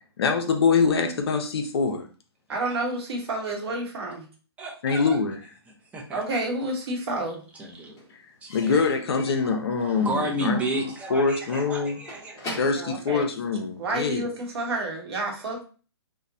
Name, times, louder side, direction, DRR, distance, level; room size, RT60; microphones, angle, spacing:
voice 1, 0.2-2.1 4.8-5.4 8.5-12.0 12.5-14.3, left 5 dB, 65° left, 0.5 m, -24 dB
voice 2, 2.5-4.2 6.1-7.4 12.8-13.3 13.8-15.6, right 2 dB, 65° right, 0.9 m, -29 dB
voice 3, 4.6-5.2 5.7-6.2 7.5-8.1 8.4-8.8 9.4-12.4, right 1 dB, 10° right, 0.5 m, -32 dB
Slam / Squeak / Wood, 6.3-7.1 7.3-14.1, left 1 dB, 20° left, 0.8 m, -43 dB
2.9 x 2.0 x 2.5 m
hypercardioid pair, 135°, 14 cm